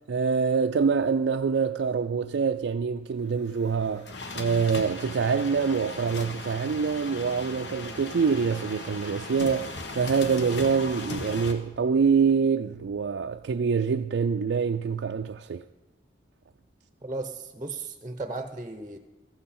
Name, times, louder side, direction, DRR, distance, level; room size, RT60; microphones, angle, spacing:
voice 1, 0.1-4.1 4.3-15.7, right 5 dB, 75° right, 0.4 m, -25 dB
sound 1, 3.3-11.5, left 2 dB, 70° left, 1.3 m, -38 dB
voice 2, 17.0-19.0, right 3 dB, 20° right, 0.7 m, -35 dB
14.5 x 14.5 x 4.2 m
head